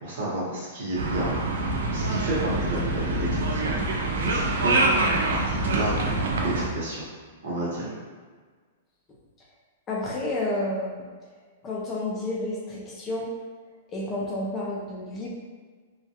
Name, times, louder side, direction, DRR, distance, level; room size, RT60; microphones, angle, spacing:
voice 1, 0.0-1.4 1.9-4.8 5.3-7.0 7.4-7.9, right 2 dB, 55° right, -6 dB, 0.9 m, -31 dB
sound 1, 1.0-6.7, right 2 dB, 85° right, 0.4 m, -25 dB
voice 2, 9.9-11.0 11.6-13.3 13.9-15.3, left 2 dB, 15° left, -4 dB, 0.3 m, -30 dB
2.2 x 2.1 x 2.7 m, 1.5 s
hypercardioid pair, 165°, 0 cm